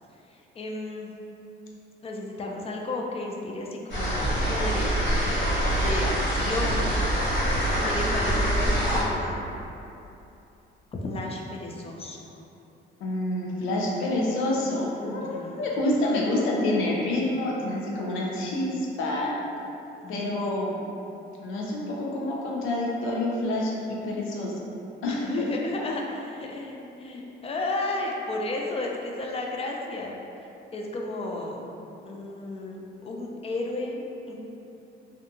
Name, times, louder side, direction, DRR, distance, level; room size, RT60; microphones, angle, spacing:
voice 1, 0.3-1.1 2.0-5.0 5.6-7.1 7.8-9.5 10.9-12.4 14.9-15.7 20.0-20.3 25.0-30.1 30.7-31.7 32.1-34.3, left 2 dB, 30° left, 0 dB, 0.4 m, -33 dB
sound 1, 3.9-9.0, right 1 dB, 65° left, 1.0 m, -25 dB
voice 2, 13.0-19.4 20.1-20.8 21.4-23.7 24.0-24.5 25.0-25.2, left 1 dB, 90° left, -3 dB, 0.5 m, -27 dB
2.7 x 2.2 x 2.5 m, 2.8 s
cardioid pair, 90°, 20 cm